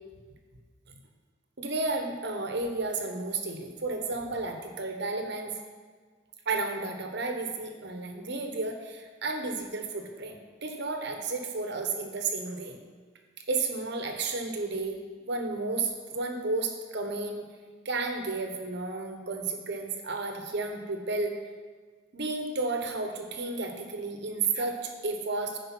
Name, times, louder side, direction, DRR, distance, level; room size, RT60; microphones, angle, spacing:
voice 1, 1.6-5.6 6.5-12.8 13.5-15.0 15.2-17.5 17.8-21.4 22.1-25.6, right 3 dB, 60° right, 4 dB, 1.1 m, -32 dB
10.5 x 4.9 x 6.0 m, 1.5 s
head